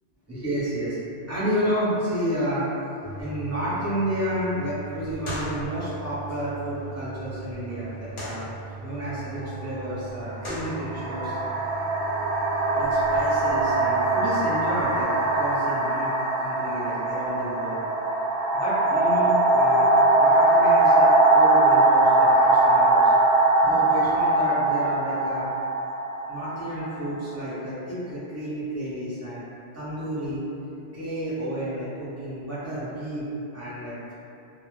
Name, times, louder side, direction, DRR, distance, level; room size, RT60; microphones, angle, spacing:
voice 1, 0.2-1.0 1.3-2.6 3.2-8.4 8.8-11.4 12.7-16.1 16.4-17.8 18.5-19.9 20.2-23.1 23.6-25.5 26.3-29.4 29.7-30.4 30.9-34.1, equal, 15° right, -12 dB, 0.6 m, -31 dB
sound 1, 3.0-15.0, right 3 dB, 35° left, 0.6 m, -38 dB
sound 2, 9.4-9.6 10.5-27.2, right 2 dB, 60° right, 0.7 m, -21 dB
2.0 x 2.0 x 3.1 m, 2.8 s
omnidirectional pair, 1.2 m